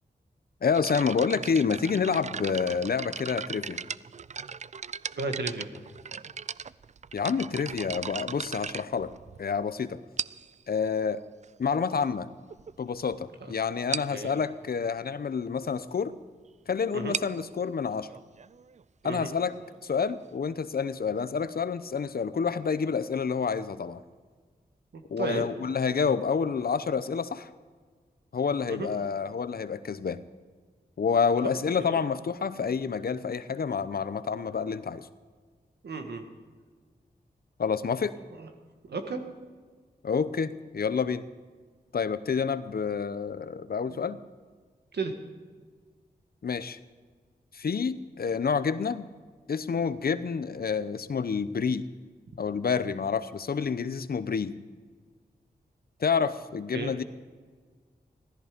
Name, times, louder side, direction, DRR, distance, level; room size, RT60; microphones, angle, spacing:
voice 1, 0.6-3.8 7.1-9.1 9.4-10.0 10.7-11.2 11.6-12.3 12.8-16.1 16.7-18.1 19.0-19.5 19.8-24.0 25.1-27.5 28.3-30.2 31.0-35.1 37.6-38.1 40.0-41.2 41.9-44.2 46.4-46.8 47.5-49.1 49.5-51.9 52.4-54.5 56.0-57.0, left 6 dB, 65° left, 14 dB, 0.8 m, -28 dB
sound 1, 0.7-9.6 10.2-10.6 11.4-11.5 12.1-12.2 12.5-12.7 13.0-13.1 13.4-13.5 13.9-14.2 16.9-20.4, right 6 dB, 45° right, 0.4 m, -38 dB
voice 2, 5.2-5.7 13.4-13.5 14.1-14.4 16.9-17.2 19.0-19.3 24.9-25.4 28.7-28.9 31.4-31.5 31.9-32.0 35.8-36.2 38.4-38.5 38.9-39.2 43.9-44.0 44.9-45.1 56.7-56.9, right 3 dB, 80° right, 5 dB, 1.8 m, -34 dB
16.0 x 14.0 x 5.2 m, 1.6 s
cardioid pair, 50°, 17 cm